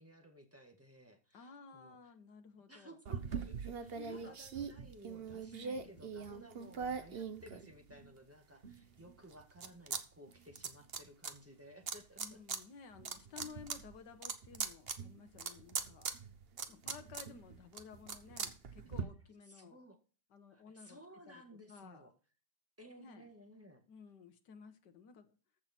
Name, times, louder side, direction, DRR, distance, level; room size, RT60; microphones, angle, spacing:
voice 1, 0.0-2.0 2.7-12.4 19.5-20.0 20.5-22.1 22.8-23.8, equal, 10° right, 4 dB, 1.7 m, -57 dB
voice 2, 1.3-3.0 3.9-4.4 5.5-5.9 12.2-16.1 16.7-19.8 20.3-21.0 21.3-21.4 21.7-22.1 23.0-23.3 23.9-25.4, left 6 dB, 70° left, 7 dB, 1.9 m, -54 dB
sound 1, 3.0-8.1 8.6-10.0 10.3-11.3 11.9-12.6 12.9-19.0, right 5 dB, 40° right, 1.0 m, -42 dB
14.5 x 6.1 x 4.4 m, 0.37 s
omnidirectional pair, 2.0 m